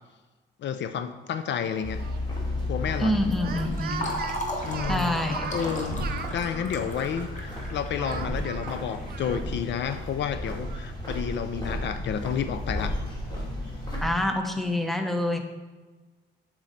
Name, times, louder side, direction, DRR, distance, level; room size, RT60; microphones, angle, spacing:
voice 1, 0.6-2.0 2.7-3.2 4.6-5.1 5.5-13.0, left 8 dB, 65° left, 10 dB, 0.5 m, -31 dB
Speech, 1.6-2.2 3.3-6.3 8.0-9.8 10.1-10.2 10.6-12.0, right 7 dB, 50° right, 0.5 m, -40 dB
sound 1, 1.8-14.1, left 1 dB, 20° left, 2.4 m, -33 dB
voice 2, 3.0-4.1 4.9-5.5 14.0-15.4, left 1 dB, ahead, 5 dB, 0.8 m, -26 dB
Fill (with liquid), 3.2-9.6, left 1 dB, 40° left, 1.4 m, -37 dB
7.4 x 6.3 x 4.0 m, 1.3 s
cardioid pair, 90°, 20 cm